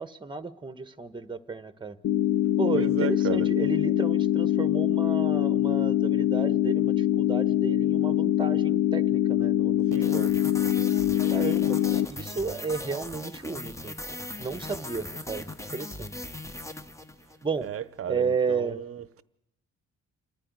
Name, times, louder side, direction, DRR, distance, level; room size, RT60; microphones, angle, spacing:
voice 1, 0.0-2.0 2.6-9.9 10.1-10.3 11.3-13.9 14.4-16.1 17.4-17.7 18.1-18.8, right 4 dB, 15° right, 1.1 m, -33 dB
sound 1, 2.0-12.1, left 12 dB, 70° left, 0.7 m, -24 dB
voice 2, 2.7-3.5 9.9-10.2 17.6-19.2, right 9 dB, 50° right, 0.8 m, -34 dB
sound 2, 9.9-17.5, left 1 dB, 10° left, 1.0 m, -39 dB
27.5 x 10.0 x 9.5 m
cardioid pair, 90°, 30 cm